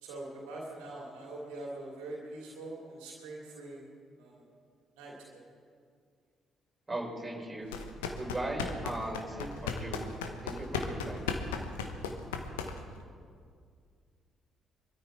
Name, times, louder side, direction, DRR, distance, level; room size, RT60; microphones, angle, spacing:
voice 1, 0.0-3.9 4.2-4.4 5.0-5.4, right 2 dB, 65° right, -2 dB, 2.8 m, -43 dB
voice 2, 6.9-7.7 8.2-10.1 10.4-11.2, right 1 dB, 15° right, -3 dB, 5.7 m, -38 dB
sound 1, 7.7-13.0, left 5 dB, 75° left, 1.1 m, -36 dB
24.0 x 13.5 x 4.3 m, 2.1 s
figure-of-eight pair, 40°, 0 cm